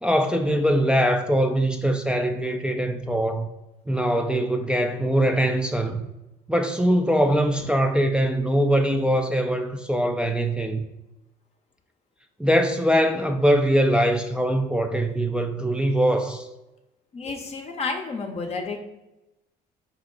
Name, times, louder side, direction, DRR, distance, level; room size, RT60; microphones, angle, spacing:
voice 1, 0.0-3.5 3.9-6.0 6.5-10.9 12.4-16.5, equal, 5° right, 0.4 m, -22 dB
voice 2, 17.1-18.8, left 4 dB, 40° left, 0.6 m, -31 dB
4.6 x 3.0 x 3.8 m
cardioid pair, 110°, 17 cm